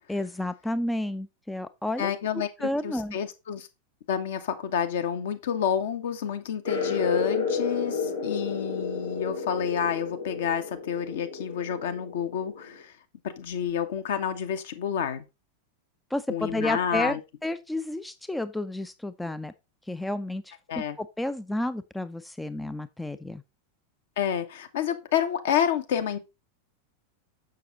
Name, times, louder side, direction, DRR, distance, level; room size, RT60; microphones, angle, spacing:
voice 1, 0.1-2.1 2.6-3.2 16.1-17.2 17.4-19.5 19.9-23.4, left 1 dB, 5° left, 0.4 m, -31 dB
voice 2, 2.0-2.5 2.8-3.7 4.1-12.9 13.2-15.2 16.3-17.2 20.7-21.0 24.2-26.2, left 8 dB, 55° left, 1.1 m, -29 dB
sound 1, 6.6-12.8, left 5 dB, 80° left, 3.4 m, -32 dB
6.6 x 6.4 x 3.9 m
figure-of-eight pair, 90°, 0 cm